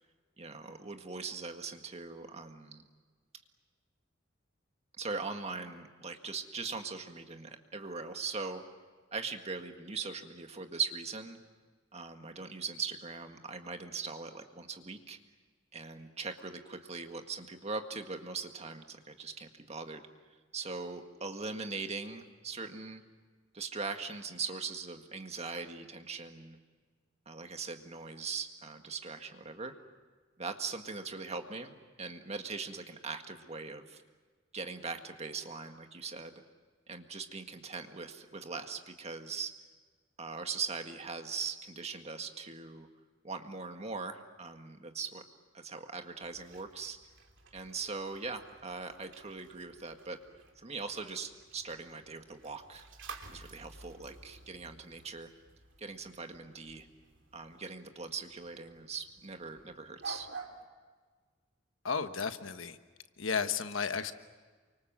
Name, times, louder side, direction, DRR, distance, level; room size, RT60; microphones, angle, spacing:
voice 1, 0.4-2.9 5.0-8.6 9.1-11.4 11.9-15.2 15.7-20.0 20.5-23.0 23.5-26.6 27.3-29.8 30.4-34.0 34.5-36.3 36.9-39.5 40.2-42.9 43.2-45.2 45.5-47.0 47.5-50.2 50.6-52.8 53.3-55.3 55.8-56.9 57.3-60.3, right 4 dB, 35° right, 6 dB, 1.8 m, -40 dB
sound 1, 46.2-60.6, right 4 dB, 70° right, 2.8 m, -52 dB
voice 2, 61.8-62.8 63.2-64.1, left 5 dB, 85° left, 10 dB, 1.2 m, -33 dB
28.5 x 25.0 x 7.5 m, 1.4 s
head